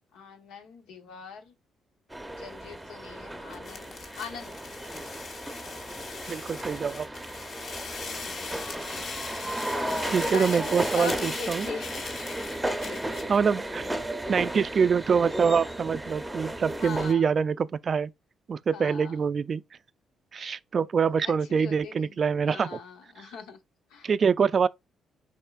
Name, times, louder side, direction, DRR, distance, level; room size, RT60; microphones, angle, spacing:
voice 1, 0.1-1.5 2.3-4.5 8.1-8.3 8.9-12.1 12.6-13.0 16.8-17.3 18.7-19.2 21.2-22.2 22.5-23.6 23.9-24.1, left 5 dB, 85° left, 1.1 m, -41 dB
sound 1, 2.1-17.1, right 1 dB, 5° right, 0.7 m, -35 dB
sound 2, 3.5-13.4, left 4 dB, 55° left, 1.0 m, -40 dB
voice 2, 6.2-7.1 10.1-11.7 13.3-13.9 14.3-18.1 18.5-19.6 20.3-22.8 24.0-24.7, right 6 dB, 45° right, 0.3 m, -25 dB
5.5 x 3.7 x 2.4 m
cardioid pair, 90°, 0 cm